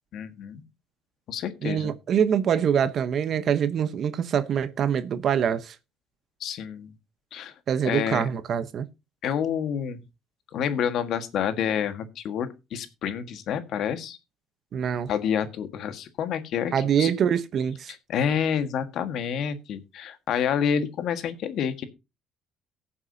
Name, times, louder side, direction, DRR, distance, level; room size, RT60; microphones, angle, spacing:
voice 1, 0.1-0.6 1.3-1.9 6.4-6.9 7.3-7.5 7.8-8.2 9.2-10.0 10.5-14.2 15.1-16.7 17.0-17.1 18.1-21.8, left 8 dB, 65° left, 1.6 m, -28 dB
voice 2, 1.6-5.8 7.7-8.9 14.7-15.1 16.7-17.9, right 8 dB, 55° right, 1.0 m, -24 dB
18.0 x 7.2 x 2.8 m
cardioid pair, 95°, 0 cm